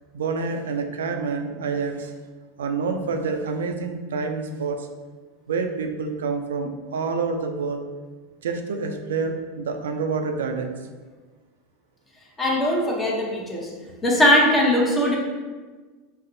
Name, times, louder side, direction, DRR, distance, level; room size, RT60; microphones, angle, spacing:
voice 1, 0.1-2.1 2.6-4.9 5.5-7.8 8.4-10.7, right 4 dB, 90° right, 5 dB, 0.3 m, -27 dB
voice 2, 12.4-13.7 14.0-15.2, left 1 dB, 20° left, -2 dB, 0.7 m, -20 dB
4.1 x 2.0 x 2.6 m, 1.4 s
hypercardioid pair, 105°, 0 cm